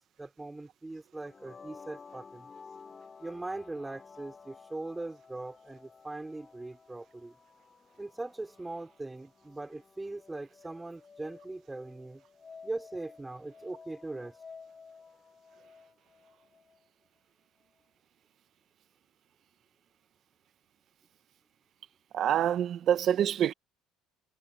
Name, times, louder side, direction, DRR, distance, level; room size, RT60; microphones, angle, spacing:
voice 1, 0.2-2.5 3.2-7.3 8.0-12.2 12.6-14.4, right 2 dB, 10° right, 4.6 m, -40 dB
sound 1, 1.2-16.9, left 5 dB, 25° left, 5.7 m, -53 dB
voice 2, 22.1-23.5, right 10 dB, 50° right, 1.4 m, -26 dB
cardioid pair, 115°, 0 cm